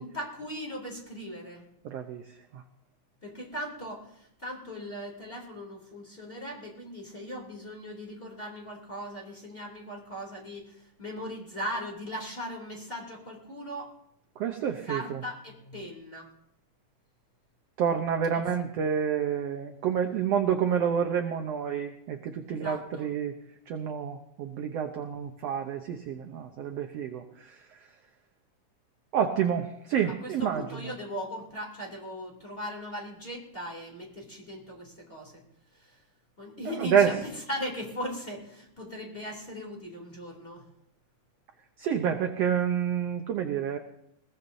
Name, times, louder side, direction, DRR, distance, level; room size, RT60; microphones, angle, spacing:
voice 1, 0.0-1.6 3.2-13.9 14.9-16.3 18.3-18.4 22.5-23.1 30.1-35.4 35.7-36.0 36.4-40.6, equal, 15° left, -1 dB, 2.8 m, -39 dB
voice 2, 1.8-2.2 2.5-2.6 14.4-15.2 17.8-23.3 23.7-27.6 29.1-30.7 36.8-37.1 41.8-43.8, right 8 dB, 70° right, 5 dB, 1.6 m, -28 dB
21.0 x 18.5 x 2.7 m, 0.76 s
omnidirectional pair, 3.8 m